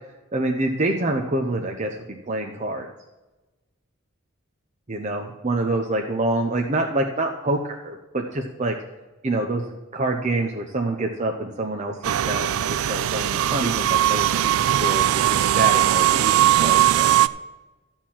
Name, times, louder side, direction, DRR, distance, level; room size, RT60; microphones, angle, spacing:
voice 1, 0.3-1.9 2.3-2.9 4.9-8.7 9.2-9.6 9.9-14.3 14.8-15.2 15.5-17.2, right 2 dB, 35° right, 2 dB, 0.8 m, -26 dB
sound 1, 12.0-17.3, right 12 dB, 85° right, 0.3 m, -20 dB
13.0 x 4.4 x 7.4 m, 1.1 s
head